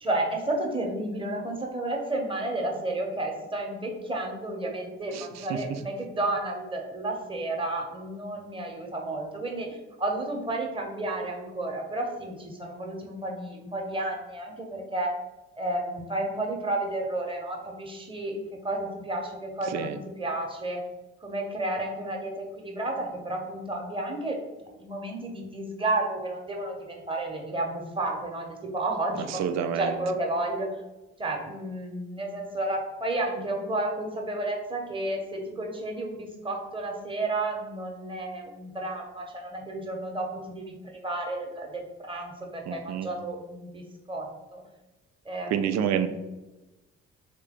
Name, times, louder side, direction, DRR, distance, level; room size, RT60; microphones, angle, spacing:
voice 1, 0.0-15.2 15.6-18.4 18.6-20.8 21.2-24.4 24.8-29.3 29.6-30.7 31.2-43.8 44.1-44.6 45.2-45.7, right 2 dB, 15° right, 1 dB, 1.0 m, -32 dB
voice 2, 5.1-5.6 19.6-20.0 29.3-30.0 42.7-43.1 45.5-46.1, right 8 dB, 50° right, 9 dB, 0.5 m, -28 dB
3.2 x 2.9 x 3.6 m, 1.1 s
hypercardioid pair, 40°, 34 cm